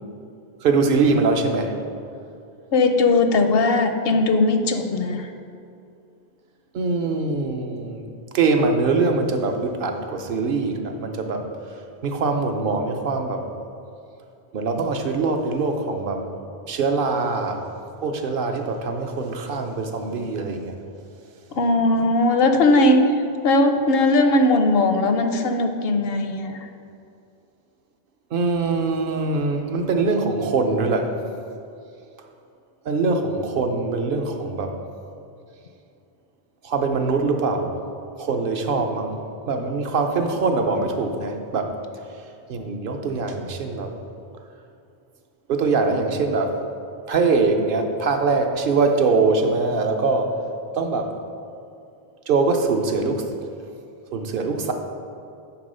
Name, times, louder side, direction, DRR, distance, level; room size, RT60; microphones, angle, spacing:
voice 1, 0.6-1.7 6.7-8.1 8.3-11.5 12.0-13.5 14.5-16.3 16.7-17.7 18.0-20.7 28.3-31.1 32.8-34.7 36.6-37.8 38.2-39.2 39.5-41.7 42.5-43.9 45.5-46.5 47.1-50.3 50.7-51.1 52.3-53.3 54.1-54.7, right 4 dB, 65° right, 5 dB, 0.8 m, -23 dB
voice 2, 2.7-5.3 21.5-26.7, left 2 dB, 75° left, 7 dB, 0.8 m, -19 dB
9.9 x 3.7 x 5.4 m, 2.6 s
omnidirectional pair, 1.0 m